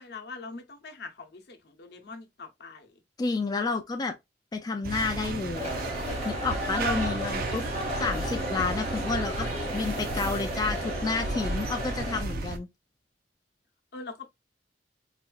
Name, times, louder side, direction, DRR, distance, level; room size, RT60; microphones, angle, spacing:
voice 1, 0.0-2.9 13.9-14.3, left 4 dB, 65° left, 0.8 m, -43 dB
voice 2, 3.2-4.1 4.5-5.7 6.2-9.5 9.7-12.7, left 4 dB, 25° left, 0.3 m, -30 dB
sound 1, 4.8-12.6, right 3 dB, 55° right, 0.5 m, -34 dB
sound 2, 5.5-12.2, equal, 40° right, 1.2 m, -34 dB
4.1 x 2.4 x 2.3 m
head